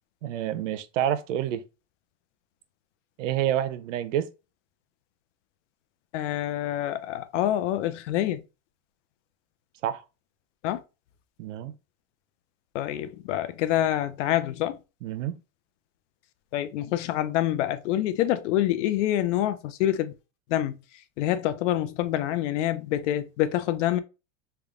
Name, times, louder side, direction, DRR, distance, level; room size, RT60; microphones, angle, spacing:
voice 1, 0.2-1.6 3.2-4.3 9.8-10.0 11.4-11.7 15.0-15.4, right 11 dB, 85° right, 0.6 m, -28 dB
voice 2, 6.1-8.4 10.6-10.8 12.7-14.8 16.5-20.1 20.5-20.8 21.2-24.0, left 12 dB, 75° left, 0.6 m, -26 dB
3.5 x 2.3 x 3.5 m
supercardioid pair, 130°, 36 cm